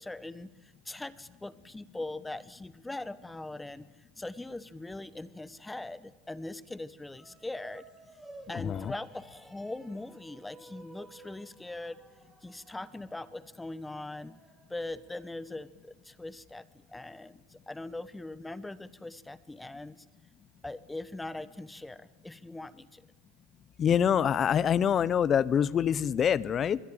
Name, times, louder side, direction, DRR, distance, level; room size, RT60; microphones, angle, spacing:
voice 1, 0.0-3.9 4.2-7.9 8.5-12.0 12.4-14.3 14.7-20.0 20.6-23.0, left 2 dB, 10° left, 17 dB, 1.0 m, -41 dB
sound 1, 7.1-15.6, right 2 dB, 10° right, 6.1 m, -54 dB
voice 2, 8.5-8.9 23.8-26.8, left 8 dB, 30° left, 21 dB, 0.9 m, -25 dB
25.0 x 21.0 x 8.9 m, 1.1 s
supercardioid pair, 115°, 0 cm